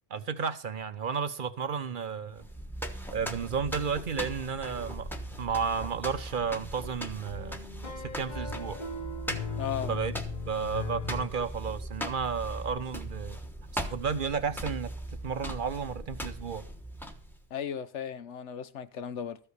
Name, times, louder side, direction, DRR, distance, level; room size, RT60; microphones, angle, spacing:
voice 1, 0.1-2.4 3.1-5.1 5.4-7.7 8.0-8.8 9.9-10.2 10.5-13.4 13.7-14.9 15.2-16.6, right 6 dB, 50° right, 0.8 m, -32 dB
sound 1, 2.3-17.5, right 1 dB, ahead, 1.0 m, -39 dB
sound 2, 4.7-11.3, left 5 dB, 40° left, 1.5 m, -40 dB
voice 2, 9.6-9.9 17.5-19.4, left 8 dB, 80° left, 1.1 m, -36 dB
13.5 x 5.5 x 7.9 m
omnidirectional pair, 1.2 m